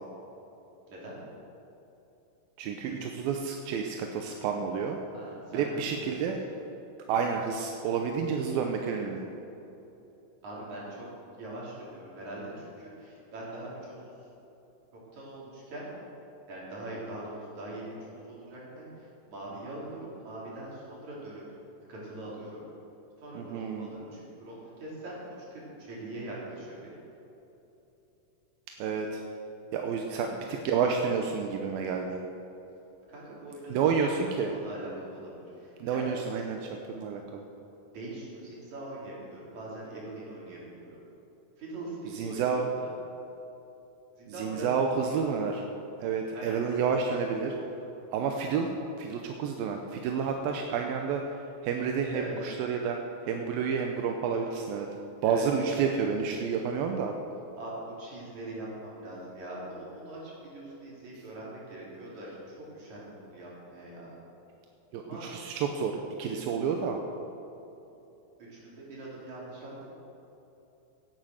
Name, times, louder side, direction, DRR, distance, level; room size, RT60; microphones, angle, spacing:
voice 1, 2.6-5.0 5.5-6.4 7.1-9.3 23.4-23.9 28.8-29.2 29.7-30.3 30.6-32.2 33.7-34.6 35.8-37.4 42.1-42.7 44.3-45.6 46.0-47.5 48.1-48.7 49.0-51.2 51.6-53.0 53.3-54.9 55.2-57.1 64.9-65.9 66.2-67.0, right 6 dB, 85° right, 3 dB, 2.6 m, -30 dB
voice 2, 5.1-6.3 10.4-11.1 11.3-13.9 15.1-15.9 16.5-21.4 21.9-22.6 23.2-27.0 30.1-30.6 33.1-36.1 37.9-41.0 41.6-42.6 44.2-44.7 46.3-47.5 50.4-50.7 52.1-52.4 55.2-55.8 57.5-64.1 65.0-65.2 68.5-69.9, right 1 dB, 55° right, -6 dB, 5.0 m, -42 dB
16.5 x 9.4 x 6.4 m, 3.0 s
omnidirectional pair, 4.2 m